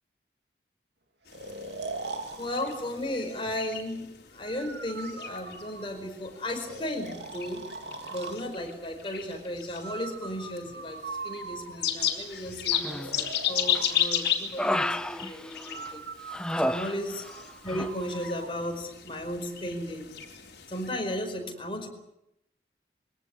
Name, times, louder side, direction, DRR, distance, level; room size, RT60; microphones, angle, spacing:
sound 1, 1.3-20.9, left 9 dB, 65° left, 4.1 m, -35 dB
Breathing, 1.3-3.1 4.4-6.1 6.6-8.4 9.8-12.1 12.9-14.0 15.6-18.5, right 3 dB, 75° right, 2.8 m, -41 dB
voice 1, 2.3-7.7 8.1-16.0 16.6-17.2 17.6-20.1 20.7-21.9, left 1 dB, 30° left, 3 dB, 4.9 m, -35 dB
Human voice, 12.7-13.3 13.7-15.9 16.3-17.4 17.7-17.9, equal, 5° left, 0.8 m, -31 dB
24.0 x 18.0 x 9.8 m, 0.83 s
head